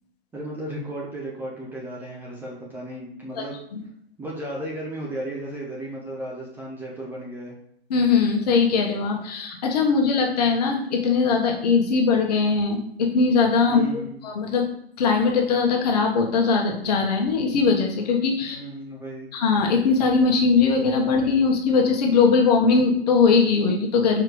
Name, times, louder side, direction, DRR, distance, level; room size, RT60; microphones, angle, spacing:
voice 1, 0.3-3.6 4.2-7.5 13.7-14.2 18.5-19.3, right 1 dB, 5° right, -4 dB, 1.0 m, -34 dB
voice 2, 7.9-13.8 14.2-14.6 15.0-18.6 19.3-24.2, left 4 dB, 40° left, 1 dB, 1.5 m, -20 dB
5.0 x 4.6 x 4.7 m, 0.73 s
figure-of-eight pair, 130°, 31 cm